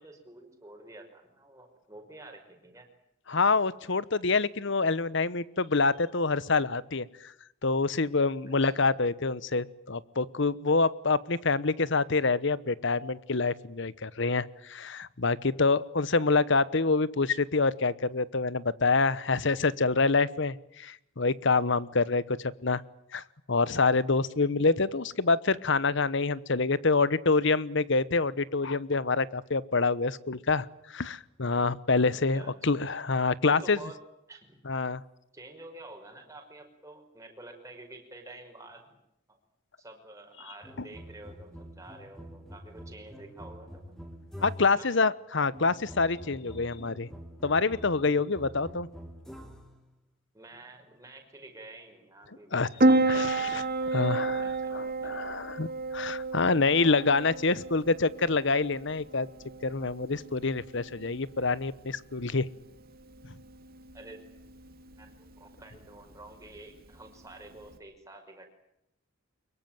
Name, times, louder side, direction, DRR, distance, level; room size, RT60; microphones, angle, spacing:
voice 1, 0.0-2.9 8.6-9.0 32.3-32.5 33.4-34.6 35.3-39.0 39.3-39.4 39.8-43.9 44.7-44.9 50.3-53.1 53.8-55.2 63.9-64.2 65.0-68.5, right 2 dB, 15° right, 3 dB, 5.5 m, -49 dB
voice 2, 3.3-7.3 7.6-22.8 23.1-23.2 23.5-33.8 34.7-35.0 44.4-47.1 47.4-48.9 52.5-52.7 53.1-55.7 55.9-59.3 59.6-62.5, left 4 dB, 60° left, 18 dB, 1.1 m, -26 dB
sound 1, 40.6-44.9 45.5-49.8, equal, 5° left, 3.1 m, -46 dB
Piano, 52.8-67.8, right 2 dB, 45° right, 2.5 m, -32 dB
24.0 x 22.5 x 9.1 m, 0.81 s
head